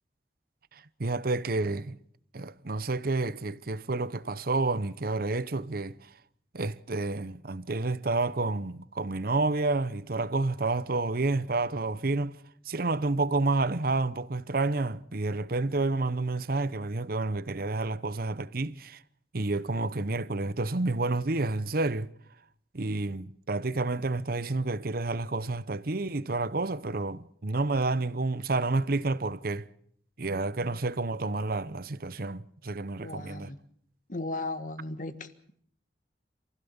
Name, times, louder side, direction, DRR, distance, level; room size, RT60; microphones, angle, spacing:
voice 1, 1.0-2.0 2.3-5.9 6.5-12.3 12.7-19.0 19.3-22.1 22.7-29.6 30.2-33.5, right 3 dB, 55° right, 0.9 m, -29 dB
voice 2, 33.0-33.6 34.1-35.3, left 2 dB, 50° left, 1.7 m, -36 dB
27.5 x 16.0 x 7.2 m
head